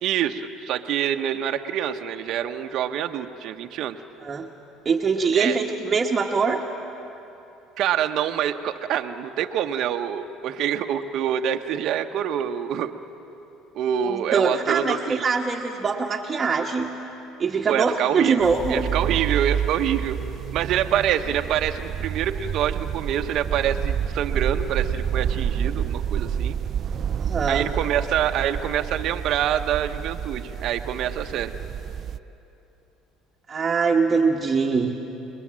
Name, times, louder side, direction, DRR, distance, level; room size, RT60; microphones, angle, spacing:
voice 1, 0.0-4.0 5.3-5.6 7.8-12.9 13.7-15.2 17.7-20.2 20.5-26.6 27.5-31.5, right 10 dB, 60° right, 6 dB, 1.0 m, -26 dB
voice 2, 4.2-4.5 4.8-6.6 14.0-16.9 17.4-18.8 27.2-27.7 33.5-34.9, right 5 dB, 30° right, 0 dB, 1.3 m, -23 dB
sound 1, 18.4-32.2, right 8 dB, 45° right, 0.5 m, -29 dB
30.0 x 21.0 x 7.5 m, 3.0 s
supercardioid pair, 105°, 0 cm